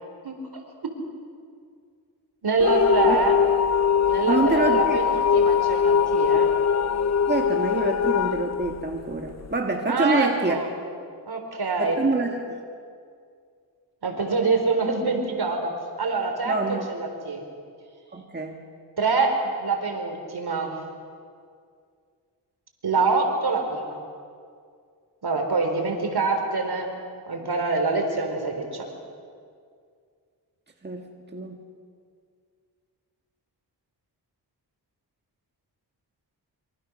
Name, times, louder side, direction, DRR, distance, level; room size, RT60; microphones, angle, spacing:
voice 1, 2.4-3.4 4.1-6.5 9.9-10.7 11.3-12.0 14.0-17.4 19.0-20.8 22.8-24.0 25.2-26.9 27.3-28.9, right 3 dB, 60° right, 4 dB, 4.5 m, -25 dB
sound 1, 2.6-9.5, left 7 dB, 40° left, 0.7 m, -22 dB
voice 2, 4.3-5.0 7.3-10.6 11.8-12.6 16.5-16.9 18.1-18.6 30.8-31.6, right 2 dB, 25° right, 1 dB, 2.0 m, -26 dB
26.5 x 24.5 x 6.5 m, 2.2 s
wide cardioid pair, 105°, 43 cm